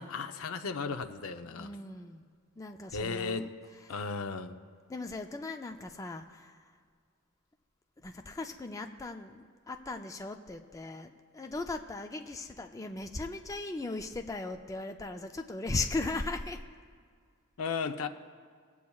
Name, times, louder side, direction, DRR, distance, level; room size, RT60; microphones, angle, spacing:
voice 1, 0.0-1.7 2.9-3.5 3.9-4.5 17.6-18.1, left 5 dB, 70° left, 8 dB, 0.6 m, -35 dB
voice 2, 1.4-3.5 3.8-4.0 4.9-6.8 8.0-16.6, left 3 dB, 15° left, 5 dB, 0.4 m, -38 dB
21.5 x 8.3 x 2.3 m, 2.1 s
head